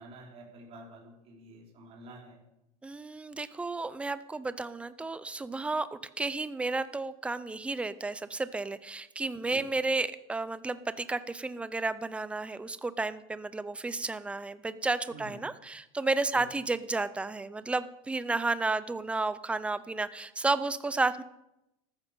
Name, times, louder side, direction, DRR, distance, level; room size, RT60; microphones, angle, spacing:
voice 1, 0.0-2.4 9.5-9.6 15.1-15.3 16.3-16.4, right 2 dB, 30° right, -2 dB, 4.9 m, -49 dB
voice 2, 2.8-21.2, right 3 dB, 5° right, 15 dB, 0.5 m, -32 dB
14.5 x 13.5 x 5.4 m, 0.90 s
supercardioid pair, 150°, 19 cm